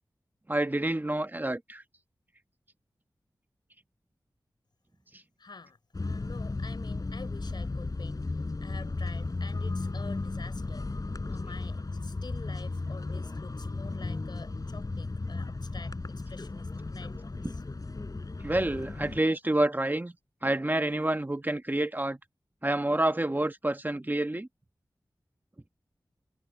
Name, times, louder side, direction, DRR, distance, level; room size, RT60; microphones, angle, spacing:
voice 1, 0.5-1.8 18.4-20.1 20.4-22.2 22.6-24.5, right 1 dB, 25° right, 1.5 m, -28 dB
voice 2, 5.4-17.6, left 4 dB, 70° left, 4.7 m, -48 dB
sound 1, 5.9-19.2, left 3 dB, 55° left, 4.1 m, -35 dB
cardioid pair, 45°, 8 cm